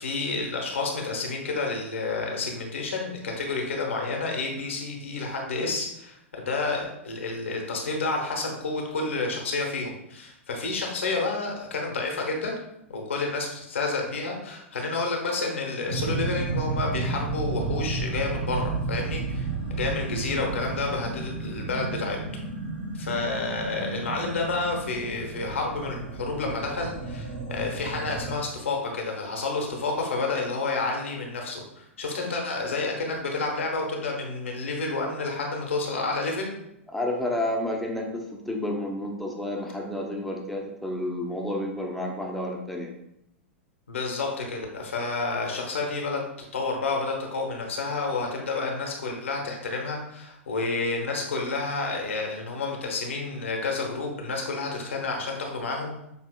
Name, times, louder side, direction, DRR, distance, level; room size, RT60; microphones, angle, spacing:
voice 1, 0.0-12.6 12.9-19.5 19.7-22.2 22.9-36.5 43.9-46.2 46.5-55.9, left 3 dB, 70° left, 1 dB, 1.0 m, -30 dB
sound 1, 15.9-28.4, right 3 dB, 60° right, 1.4 m, -32 dB
voice 2, 36.9-42.9, left 1 dB, ahead, -1 dB, 0.8 m, -30 dB
6.8 x 2.8 x 2.2 m, 0.81 s
figure-of-eight pair, 100°, 7 cm